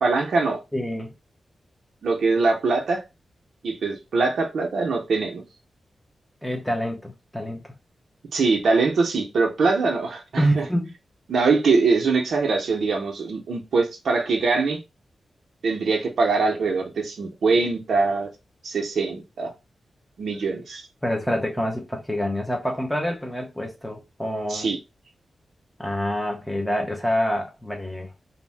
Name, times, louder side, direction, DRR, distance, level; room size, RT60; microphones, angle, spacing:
voice 1, 0.0-0.6 2.0-3.0 3.6-5.4 8.3-10.6 11.3-14.8 15.6-18.3 18.6-19.5 20.2-20.9 24.5-24.8, right 4 dB, 75° right, 0.6 m, -22 dB
voice 2, 0.7-1.1 6.4-7.6 10.4-10.9 21.0-24.7 25.8-28.1, equal, ahead, 0.6 m, -26 dB
2.6 x 2.0 x 3.2 m
wide cardioid pair, 160°, 0 cm